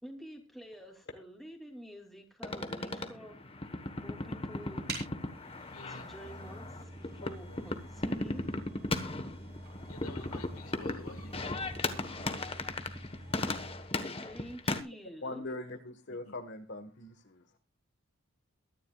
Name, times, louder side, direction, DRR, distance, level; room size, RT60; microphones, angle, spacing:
voice 1, 0.0-4.9 5.9-8.5 13.9-15.4, equal, ahead, 2 dB, 2.9 m, -49 dB
sound 1, 2.4-14.8, left 2 dB, 25° left, 1.3 m, -37 dB
sound 2, 4.9-14.0, right 2 dB, 50° right, 6.0 m, -47 dB
voice 2, 5.7-6.1 7.2-7.7 9.9-12.3 16.1-16.4, left 3 dB, 90° left, 8 dB, 1.8 m, -51 dB
voice 3, 15.2-17.6, left 2 dB, 55° left, 7 dB, 1.5 m, -42 dB
22.5 x 11.0 x 2.4 m, 0.28 s
head